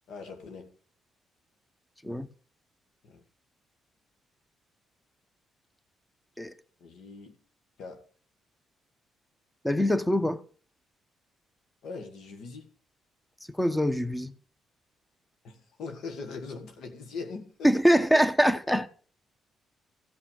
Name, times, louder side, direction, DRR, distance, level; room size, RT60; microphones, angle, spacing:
voice 1, 0.1-0.7 3.0-3.2 6.8-7.4 7.8-8.0 11.8-12.7 15.4-17.7, left 4 dB, 75° left, 1.8 m, -41 dB
voice 2, 9.6-10.4 13.6-14.3 17.6-18.9, equal, 5° left, 1.0 m, -23 dB
15.5 x 5.7 x 7.4 m
cardioid pair, 90°, 0 cm